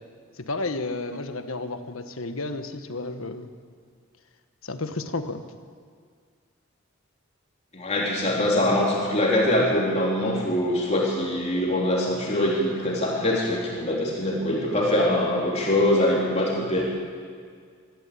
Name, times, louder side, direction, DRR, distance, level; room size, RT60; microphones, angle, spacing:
voice 1, 0.4-3.5 4.6-5.4, left 2 dB, 75° left, 8 dB, 1.5 m, -32 dB
voice 2, 7.7-16.9, left 1 dB, 30° left, -4 dB, 3.8 m, -23 dB
24.5 x 13.5 x 8.9 m, 2.1 s
head